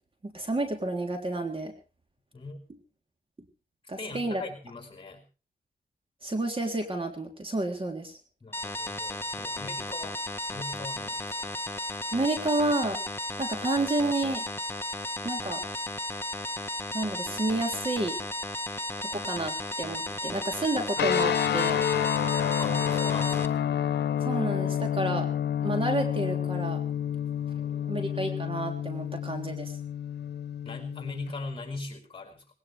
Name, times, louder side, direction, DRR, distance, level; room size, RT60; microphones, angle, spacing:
voice 1, 0.2-1.7 3.9-4.4 6.2-8.1 12.1-13.0 13.4-14.5 15.2-15.6 16.9-18.2 19.0-21.9 24.2-25.3 25.6-26.8 27.9-29.7, right 2 dB, 30° right, 4 dB, 3.5 m, -30 dB
voice 2, 4.0-5.2 8.4-10.2 10.5-11.5 22.6-23.7 27.6-28.1 30.6-32.4, left 3 dB, 30° left, 6 dB, 4.9 m, -40 dB
sound 1, 8.5-23.5, left 1 dB, 15° left, 1.5 m, -34 dB
sound 2, 21.0-31.3, left 9 dB, 85° left, 0.9 m, -29 dB
19.5 x 18.5 x 3.5 m, 0.34 s
cardioid pair, 75°, 17 cm